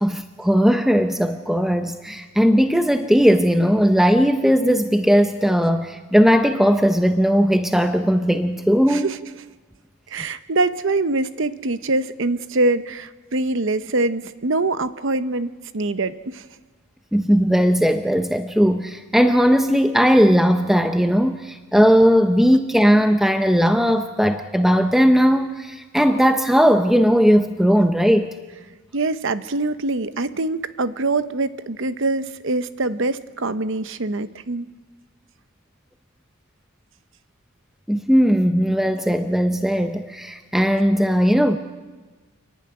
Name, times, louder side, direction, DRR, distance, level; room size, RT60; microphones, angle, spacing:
voice 1, 0.0-9.1 17.1-28.3 37.9-41.6, equal, ahead, 7 dB, 0.6 m, -18 dB
voice 2, 8.9-9.2 10.1-16.5 28.9-34.7, right 2 dB, 55° right, 13 dB, 0.8 m, -24 dB
29.5 x 11.0 x 9.6 m, 1.3 s
head